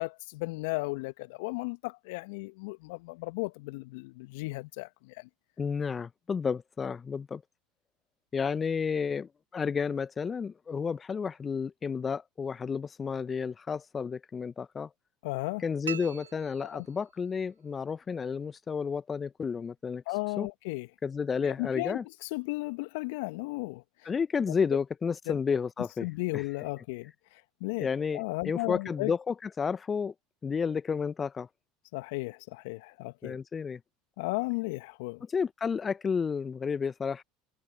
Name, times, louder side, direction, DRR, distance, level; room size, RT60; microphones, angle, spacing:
voice 1, 0.0-5.3 15.2-15.6 16.7-16.9 20.1-20.9 21.4-23.8 25.3-25.4 26.0-27.9 28.1-29.1 31.9-33.4 34.2-35.2, left 25 dB, 65° left, 1.7 m, -35 dB
voice 2, 5.6-7.4 8.3-14.9 15.6-20.0 20.4-20.5 21.0-22.0 24.0-26.1 26.3-26.4 27.8-30.1 30.4-31.5 33.2-33.8 35.3-37.2, left 6 dB, 25° left, 0.9 m, -31 dB
sound 1, 15.8-17.4, right 8 dB, 80° right, 1.1 m, -42 dB
figure-of-eight pair, 75°, 0 cm